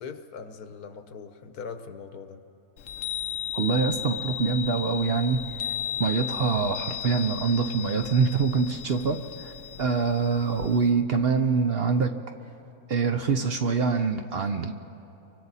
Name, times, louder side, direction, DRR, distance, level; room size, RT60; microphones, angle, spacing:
voice 1, 0.0-2.4, left 5 dB, 85° left, 8 dB, 1.5 m, -40 dB
Chime, 2.8-10.9, left 11 dB, 60° left, 0.8 m, -35 dB
voice 2, 3.5-5.4 6.0-9.5 9.8-12.1 12.9-14.7, right 5 dB, 55° right, 6 dB, 0.8 m, -25 dB
29.5 x 24.5 x 4.1 m, 2.9 s
omnidirectional pair, 1.6 m